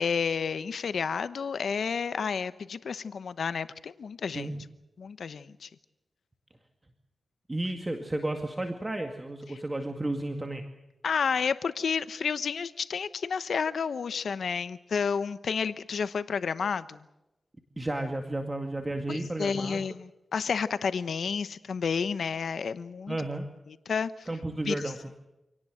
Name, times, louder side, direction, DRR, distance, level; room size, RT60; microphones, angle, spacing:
voice 1, 0.0-4.5 5.0-5.7 11.0-17.0 19.1-23.2 23.9-24.3 24.7-24.8, left 6 dB, 80° left, 14 dB, 0.9 m, -30 dB
voice 2, 7.5-10.6 17.8-19.8 23.1-23.5 24.3-25.1, right 1 dB, 20° right, 5 dB, 2.1 m, -32 dB
27.0 x 18.0 x 7.8 m, 0.94 s
wide cardioid pair, 85°, 0 cm